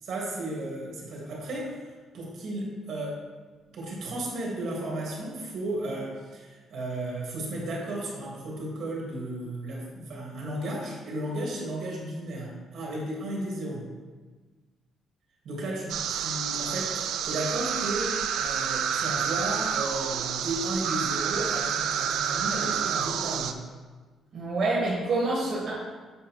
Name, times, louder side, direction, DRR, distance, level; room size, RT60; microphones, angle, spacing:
voice 1, 0.0-1.8 2.1-3.2 3.7-13.9 15.5-23.6, right 1 dB, 60° right, -2 dB, 1.7 m, -34 dB
sound 1, 15.9-23.5, right 8 dB, 75° right, 0.4 m, -29 dB
voice 2, 24.3-25.7, right 2 dB, 45° right, -7 dB, 1.3 m, -27 dB
7.7 x 4.8 x 3.1 m, 1.4 s
cardioid pair, 165°, 0 cm